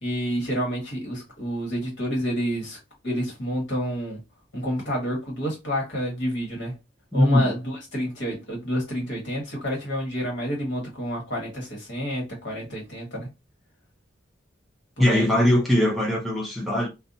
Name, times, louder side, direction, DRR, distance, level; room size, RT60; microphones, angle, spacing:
voice 1, 0.0-2.8 3.0-4.2 4.5-6.7 7.1-13.3 15.0-15.3, equal, 65° left, 1.3 m, -29 dB
voice 2, 7.1-7.5 15.0-16.9, left 1 dB, ahead, 0.4 m, -20 dB
2.6 x 2.2 x 2.6 m
head